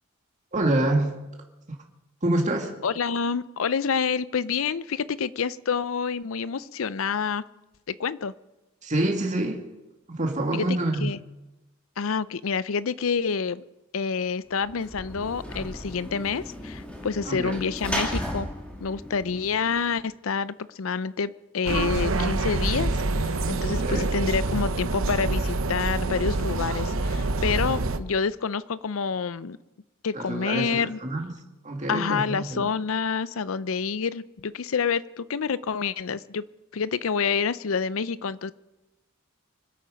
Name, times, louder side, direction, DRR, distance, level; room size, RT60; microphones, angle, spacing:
voice 1, 0.5-1.2 2.2-2.7 8.8-9.6 10.1-11.1 17.2-17.6 23.6-24.1 30.1-31.3 31.6-32.7, right 1 dB, 35° right, 1 dB, 2.2 m, -26 dB
voice 2, 2.8-7.4 7.9-8.3 10.5-11.2 12.0-13.6 13.9-18.5 18.8-29.6 30.0-31.0 31.9-36.4 36.7-38.5, left 5 dB, 75° left, 17 dB, 0.5 m, -28 dB
Sliding door / Slam, 14.6-20.0, equal, 5° left, 2.3 m, -35 dB
sound 1, 21.7-28.0, right 2 dB, 75° right, 0.8 m, -26 dB
25.5 x 8.7 x 5.2 m, 1.0 s
head